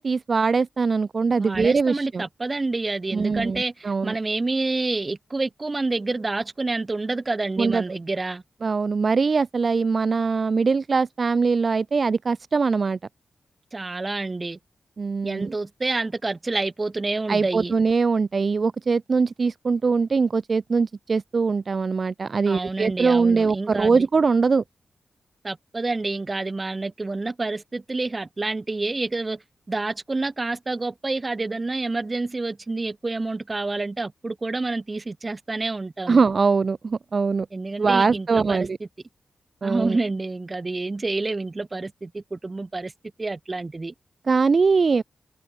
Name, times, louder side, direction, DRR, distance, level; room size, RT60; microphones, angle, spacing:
voice 1, 0.0-2.2 3.1-4.2 7.6-7.8 8.6-13.0 15.0-15.5 17.3-24.6 36.1-37.5 37.8-38.8 39.6-40.0 44.3-45.0, right 4 dB, 45° right, 0.6 m, -22 dB
voice 2, 1.4-8.4 13.7-14.6 15.2-17.7 22.5-24.1 25.4-36.2 37.5-38.7 39.6-42.9 43.2-43.9, right 3 dB, 30° right, 5.0 m, -28 dB
wide cardioid pair, 105°, 0 cm